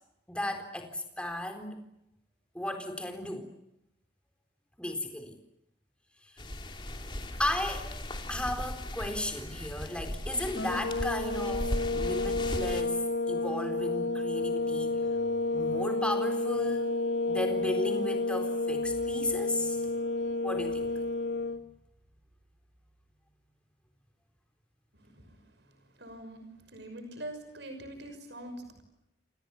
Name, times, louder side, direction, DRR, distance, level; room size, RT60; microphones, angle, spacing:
voice 1, 0.3-1.8 2.5-3.5 4.8-5.4 7.4-7.9 8.3-15.0 15.5-16.9 17.3-20.0 20.4-21.2, left 1 dB, 5° left, 5 dB, 4.0 m, -35 dB
sound 1, 6.4-12.8, left 1 dB, 25° left, 3.0 m, -37 dB
sound 2, 10.6-21.6, left 2 dB, 70° left, 2.3 m, -30 dB
voice 2, 24.9-25.3 26.0-26.4 26.7-28.8, right 1 dB, 65° right, 7 dB, 6.0 m, -43 dB
29.0 x 28.5 x 7.1 m, 0.85 s
head